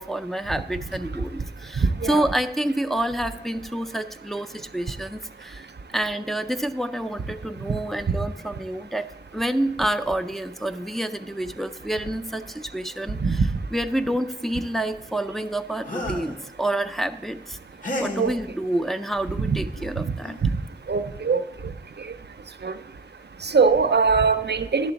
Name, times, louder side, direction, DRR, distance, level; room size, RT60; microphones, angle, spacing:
voice 1, 0.0-5.7 5.9-9.1 9.3-13.4 13.7-17.6 18.0-20.3, right 1 dB, ahead, 8 dB, 0.4 m, -28 dB
sound 1, 15.8-16.4 17.8-18.4 19.8-19.9 20.2-20.5, left 1 dB, 50° left, 1.1 m, -31 dB
voice 2, 20.9-21.4 22.6-22.7 23.4-24.9, right 5 dB, 75° right, 9 dB, 0.5 m, -21 dB
11.0 x 3.9 x 6.9 m, 0.89 s
wide cardioid pair, 40°, 17 cm